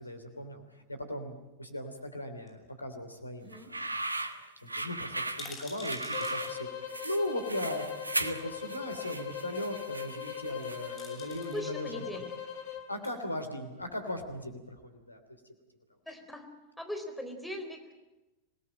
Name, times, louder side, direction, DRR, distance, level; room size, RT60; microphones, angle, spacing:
voice 1, 0.0-7.9 8.2-11.9 12.1-12.2 12.9-15.2, left 1 dB, 85° left, 7 dB, 3.1 m, -38 dB
sound 1, 2.5-3.3 3.6-3.7 3.9-4.0 4.3-4.4 5.1-6.6 7.8-7.9 10.4-10.6 11.0-11.6 12.8-13.1 13.8-14.5 14.8-14.9, left 3 dB, 20° left, 6.8 m, -49 dB
voice 2, 3.4-3.7 11.5-12.3 16.1-16.5 16.8-17.9, equal, ahead, 4 dB, 3.9 m, -40 dB
sound 2, 3.5-11.1, right 2 dB, 80° right, 1.2 m, -37 dB
sound 3, 6.1-12.9, left 9 dB, 50° left, 3.8 m, -41 dB
26.5 x 18.0 x 8.9 m, 1.1 s
figure-of-eight pair, 90°, 0 cm